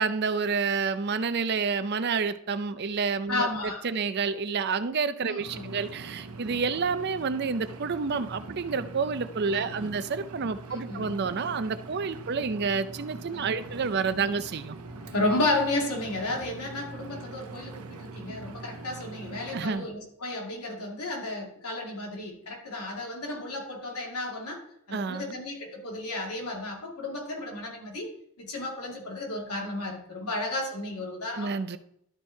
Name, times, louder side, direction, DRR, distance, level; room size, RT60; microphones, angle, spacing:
voice 1, 0.0-14.7 19.5-19.9 24.9-25.4 31.4-31.8, right 5 dB, 50° right, 12 dB, 0.5 m, -29 dB
voice 2, 3.3-3.8 5.3-5.8 9.5-9.9 10.7-11.2 13.3-13.5 14.1-14.3 14.9-28.1 28.4-31.5, left 2 dB, 90° left, 0 dB, 2.4 m, -33 dB
Engine, 5.4-19.7, right 3 dB, 85° right, 0.9 m, -42 dB
12.0 x 4.6 x 4.4 m, 0.72 s
head